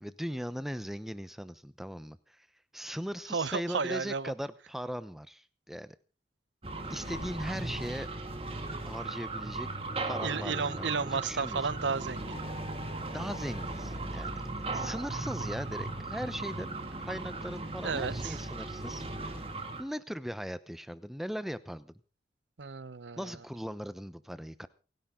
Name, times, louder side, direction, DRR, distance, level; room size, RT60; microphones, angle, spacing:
voice 1, 0.0-2.5 2.7-6.0 6.9-8.1 8.9-9.7 10.1-11.7 13.1-14.4 14.7-19.2 19.8-21.9 23.2-24.7, equal, ahead, 0.8 m, -39 dB
voice 2, 3.3-4.3 10.2-12.6 17.8-18.4 22.6-23.3, right 5 dB, 85° right, 0.8 m, -33 dB
sound 1, 6.6-19.8, right 2 dB, 30° right, 2.1 m, -37 dB
sound 2, 7.0-8.7, equal, 65° left, 4.0 m, -48 dB
28.5 x 10.5 x 3.8 m
head